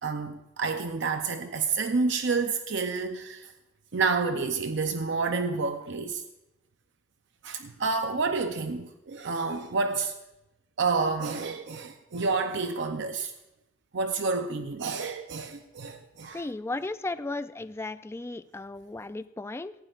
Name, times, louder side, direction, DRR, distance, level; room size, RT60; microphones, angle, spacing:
voice 1, 0.0-3.5 3.9-6.2 7.4-10.1 10.8-13.3 13.9-16.5, right 4 dB, 65° right, 0.6 m, -29 dB
voice 2, 16.3-19.7, left 2 dB, 15° left, 0.3 m, -35 dB
18.0 x 16.0 x 2.5 m
head